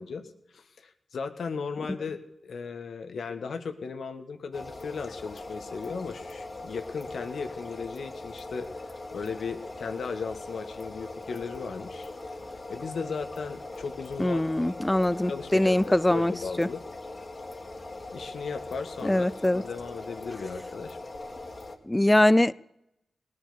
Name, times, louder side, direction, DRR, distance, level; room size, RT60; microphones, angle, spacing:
voice 1, 0.0-8.7 9.1-12.1 12.7-14.7 15.3-16.8 18.1-21.0, left 5 dB, 75° left, 9 dB, 1.3 m, -36 dB
sound 1, 4.5-21.8, left 2 dB, 45° left, 2.0 m, -41 dB
voice 2, 14.2-16.3 16.6-16.7 19.0-19.6 21.9-22.5, left 1 dB, 15° left, 20 dB, 0.5 m, -22 dB
18.5 x 10.0 x 6.9 m, 0.85 s
cardioid pair, 50°, 0 cm